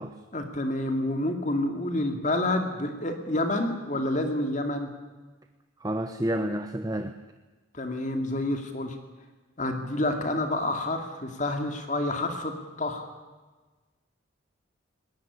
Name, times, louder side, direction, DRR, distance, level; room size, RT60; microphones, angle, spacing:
voice 1, 0.3-4.9 7.7-9.0 9.6-13.1, left 1 dB, 35° left, 5 dB, 2.4 m, -28 dB
voice 2, 5.8-7.2, right 1 dB, 20° right, 7 dB, 0.9 m, -29 dB
20.5 x 18.5 x 9.9 m, 1.3 s
head